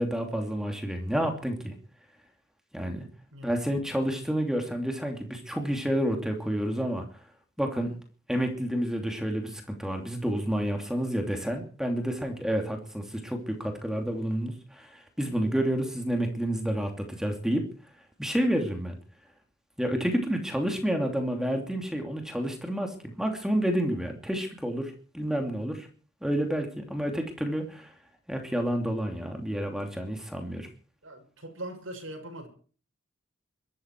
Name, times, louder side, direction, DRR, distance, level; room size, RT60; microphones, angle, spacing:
voice 1, 0.0-1.7 2.7-3.1 3.4-7.1 7.6-7.9 8.3-17.7 18.2-19.0 19.8-25.9 26.2-27.9 28.3-30.7, equal, 5° right, 2.8 m, -29 dB
voice 2, 3.3-3.7 19.9-20.2 31.0-32.5, right 1 dB, 70° right, 6.3 m, -41 dB
22.5 x 13.5 x 4.7 m
head